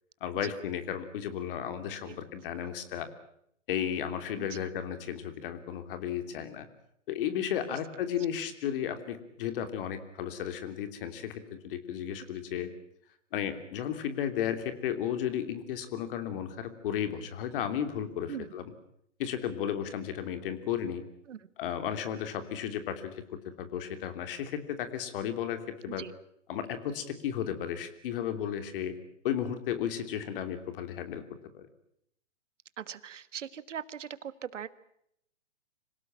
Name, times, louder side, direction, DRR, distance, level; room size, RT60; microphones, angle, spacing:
voice 1, 0.2-3.1 3.7-6.7 7.1-12.7 13.3-18.6 19.2-21.0 21.6-26.0 26.5-29.0 29.2-31.2 31.5-31.7, left 9 dB, 45° left, 9 dB, 3.2 m, -34 dB
voice 2, 4.4-4.7 7.7-7.8 18.3-18.5 21.3-21.4 26.0-26.1 32.8-34.7, right 8 dB, 70° right, 15 dB, 1.5 m, -40 dB
26.5 x 17.5 x 8.8 m, 0.73 s
hypercardioid pair, 135°, 37 cm